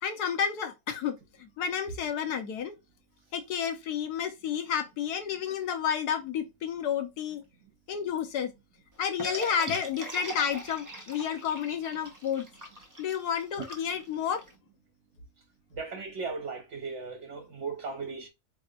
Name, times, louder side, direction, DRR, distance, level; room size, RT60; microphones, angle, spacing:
voice 1, 0.0-2.8 3.3-7.4 7.9-8.5 9.0-12.5 13.0-14.4, left 8 dB, 75° left, 1.3 m, -31 dB
sound 1, 9.2-14.5, right 1 dB, 20° right, 0.4 m, -41 dB
voice 2, 15.8-18.3, right 4 dB, 60° right, 0.8 m, -37 dB
4.3 x 3.5 x 2.4 m
omnidirectional pair, 1.7 m